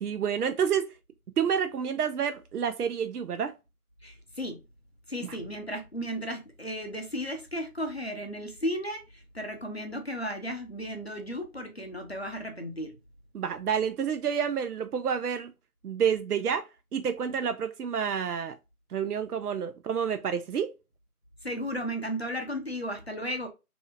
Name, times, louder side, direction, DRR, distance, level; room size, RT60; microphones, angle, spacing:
voice 1, 0.0-0.9 1.4-3.5 13.3-15.5 15.8-16.7 16.9-18.5 18.9-20.7, right 7 dB, 90° right, 0.5 m, -29 dB
voice 2, 4.0-4.6 5.1-13.0 21.4-23.5, equal, 45° left, 0.6 m, -34 dB
3.2 x 2.7 x 2.6 m
figure-of-eight pair, 180°, 44 cm